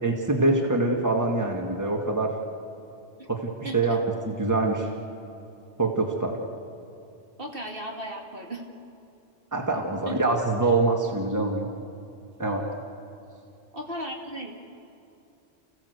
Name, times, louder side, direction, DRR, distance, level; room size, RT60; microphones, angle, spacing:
voice 1, 0.0-2.3 3.3-4.0 4.3-4.9 5.8-6.4 9.5-11.7 12.4-12.7, right 2 dB, 15° right, 1 dB, 2.0 m, -24 dB
voice 2, 7.4-8.6 10.1-10.2 13.7-14.5, right 1 dB, 50° right, 0 dB, 2.7 m, -35 dB
29.5 x 16.0 x 8.2 m, 2.7 s
omnidirectional pair, 1.2 m